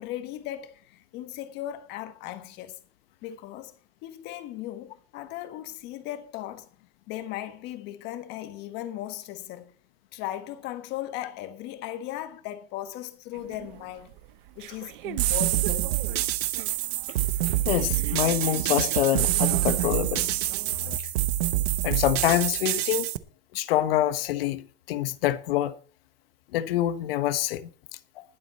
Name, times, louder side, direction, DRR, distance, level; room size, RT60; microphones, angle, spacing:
voice 1, 0.0-2.8 3.2-3.7 4.0-6.7 7.1-9.7 10.1-14.1 14.5-15.9, left 13 dB, 35° left, 1.4 m, -37 dB
sound 1, 13.3-21.0, right 15 dB, 55° right, 0.9 m, -39 dB
sound 2, 15.2-23.2, right 16 dB, 80° right, 1.1 m, -26 dB
voice 2, 17.7-20.3 21.0-21.1 21.8-23.1 23.5-25.7 26.5-27.7, left 13 dB, 70° left, 1.3 m, -26 dB
20.5 x 7.6 x 4.2 m
supercardioid pair, 175°, 30 cm